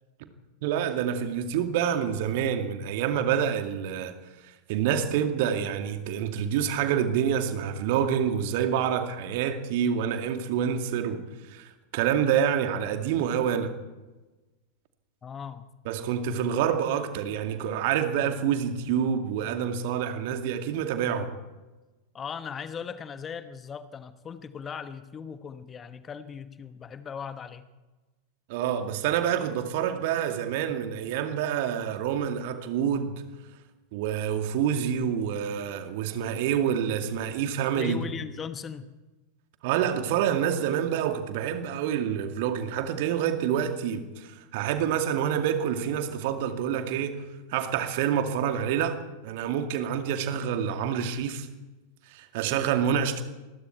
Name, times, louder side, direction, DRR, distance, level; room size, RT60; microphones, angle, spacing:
voice 1, 0.6-4.1 4.4-13.7 15.9-21.3 28.5-33.2 33.9-38.0 39.6-47.2 47.5-49.0 49.2-51.5 52.1-53.2, right 8 dB, 50° right, 2.3 m, -27 dB
voice 2, 15.2-15.6 22.1-27.7 37.7-38.9, left 6 dB, 20° left, 1.2 m, -38 dB
27.5 x 21.0 x 4.5 m
figure-of-eight pair, 90°, 0 cm